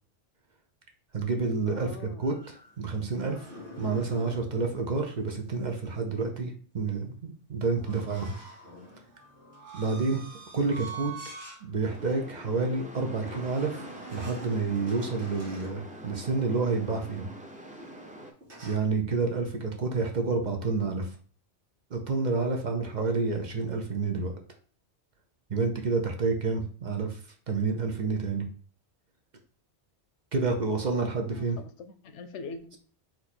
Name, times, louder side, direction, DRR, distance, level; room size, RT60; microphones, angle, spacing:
voice 1, 1.1-3.5 3.8-8.3 9.7-10.2 10.5-11.3 11.6-13.8 14.1-17.3 18.6-21.1 21.9-24.4 25.5-27.2 27.5-28.5 30.3-31.6, right 4 dB, 45° right, 3 dB, 0.7 m, -29 dB
voice 2, 1.6-2.3 10.6-10.7 20.6-20.9 30.6-30.8 31.3-32.8, left 3 dB, 85° left, 9 dB, 1.0 m, -43 dB
sound 1, 2.2-4.5 7.8-11.6 12.1-12.3 13.2-15.8 18.4-18.7, right 2 dB, 75° right, 1.8 m, -45 dB
sound 2, 11.8-18.3, right 1 dB, 10° right, 0.5 m, -45 dB
4.5 x 2.7 x 4.2 m, 0.43 s
omnidirectional pair, 1.2 m